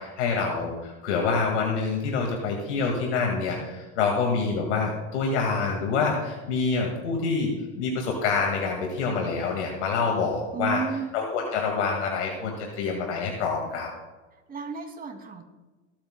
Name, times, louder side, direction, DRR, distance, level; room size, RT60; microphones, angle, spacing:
voice 1, 0.0-10.8 11.1-13.9, left 4 dB, 75° left, 1 dB, 2.0 m, -26 dB
voice 2, 10.5-11.1 14.5-15.4, right 7 dB, 25° right, 3 dB, 2.5 m, -32 dB
25.5 x 8.7 x 2.2 m, 1.2 s
hypercardioid pair, 95°, 35 cm